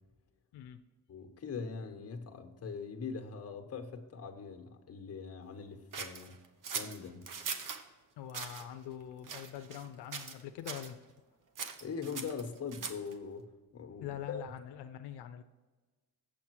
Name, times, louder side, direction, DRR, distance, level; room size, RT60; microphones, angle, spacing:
voice 1, 1.1-6.4 6.7-7.3 11.8-14.4, left 5 dB, 40° left, 5 dB, 1.2 m, -42 dB
sound 1, 5.9-7.8 8.3-8.6 9.2-9.9 10.1-10.4 10.7-10.9 11.6-13.1, right 6 dB, 55° right, 0.9 m, -40 dB
voice 2, 8.2-11.0 14.0-15.4, left 10 dB, 85° left, 8 dB, 0.6 m, -44 dB
7.6 x 7.2 x 4.7 m, 1.3 s
cardioid pair, 130°, 39 cm